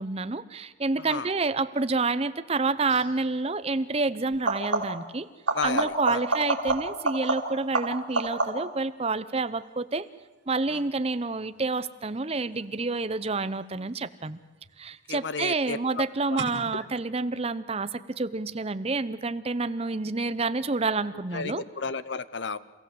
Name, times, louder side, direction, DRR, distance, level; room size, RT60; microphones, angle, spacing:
voice 1, 0.0-5.3 5.6-10.1 10.5-14.4 14.8-21.6, right 3 dB, 30° right, 13 dB, 0.7 m, -28 dB
voice 2, 1.0-1.3 5.5-6.2 10.7-10.8 15.1-15.8 16.3-16.4 16.7-16.8 21.3-22.6, left 4 dB, 65° left, 16 dB, 0.8 m, -33 dB
sound 1, 2.9-3.2 4.3-5.1 5.5-8.8 14.3-14.9 16.4-16.5, right 2 dB, 70° right, 4.1 m, -29 dB
28.5 x 16.0 x 7.8 m, 1.2 s
head